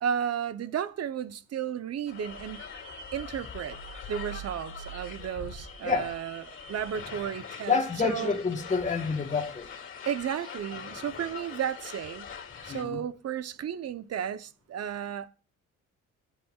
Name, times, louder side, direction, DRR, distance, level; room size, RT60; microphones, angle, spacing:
voice 1, 0.0-2.7 3.1-3.8 4.1-7.8 8.0-8.4 10.1-12.3 12.6-15.3, right 9 dB, 55° right, 0.9 m, -33 dB
sound 1, 2.1-12.8, left 6 dB, 40° left, 2.5 m, -43 dB
sound 2, 3.7-6.3, right 6 dB, 80° left, 2.0 m, -45 dB
voice 2, 7.7-9.7 12.7-13.0, left 5 dB, 25° left, 1.7 m, -28 dB
18.5 x 10.0 x 2.4 m
cardioid pair, 90°, 30 cm